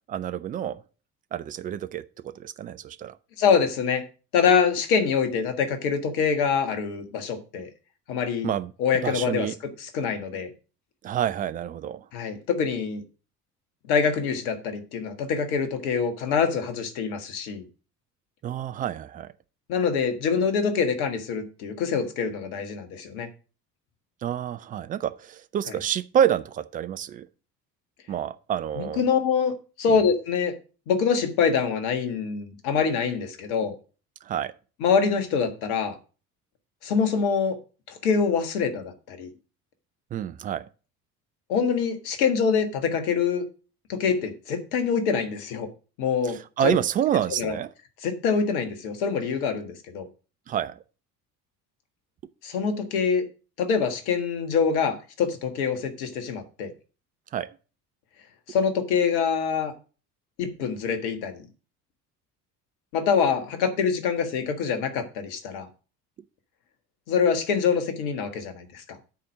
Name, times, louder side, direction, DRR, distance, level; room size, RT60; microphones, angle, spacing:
voice 1, 0.1-0.8 1.3-3.2 8.4-8.7 9.0-9.6 11.0-12.1 18.4-19.3 24.2-27.3 28.1-29.0 29.9-30.0 34.3-34.5 40.1-40.7 46.2-47.7 50.5-50.8 57.3-57.5, right 10 dB, 20° right, 0.3 m, -28 dB
voice 2, 3.4-4.0 4.3-7.7 8.1-8.5 8.8-10.5 12.1-13.0 13.9-17.6 19.7-23.3 28.8-29.5 29.8-30.5 30.9-33.8 34.8-35.9 36.8-37.6 37.9-39.3 41.5-43.4 43.9-45.7 46.0-46.4 46.6-46.8 47.4-47.6 48.0-50.1 52.4-53.2 53.6-56.7 58.5-59.7 60.4-61.4 62.9-65.7 67.1-68.8, left 6 dB, 60° left, 1.6 m, -25 dB
9.9 x 4.3 x 7.5 m
figure-of-eight pair, 60°, 48 cm